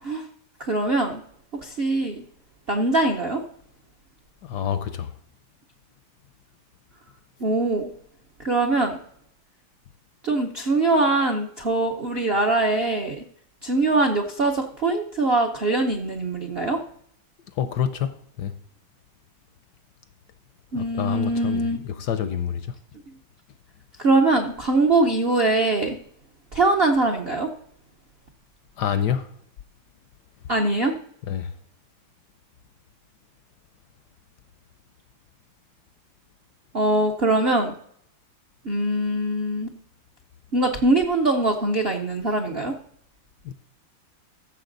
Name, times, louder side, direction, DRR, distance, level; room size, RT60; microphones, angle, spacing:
voice 1, 0.6-1.2 1.6-2.2 2.7-3.4 7.4-7.9 8.4-9.0 10.2-13.2 13.6-16.8 20.7-21.8 24.0-26.0 26.5-27.5 30.5-30.9 36.7-37.7 38.6-39.7 40.5-42.8, right 2 dB, 60° right, 0.6 m, -22 dB
voice 2, 4.4-5.1 17.6-18.5 20.7-22.7 28.8-29.3 31.3-31.5 43.4-43.5, left 9 dB, 70° left, 1.0 m, -27 dB
14.0 x 6.7 x 3.9 m
omnidirectional pair, 2.2 m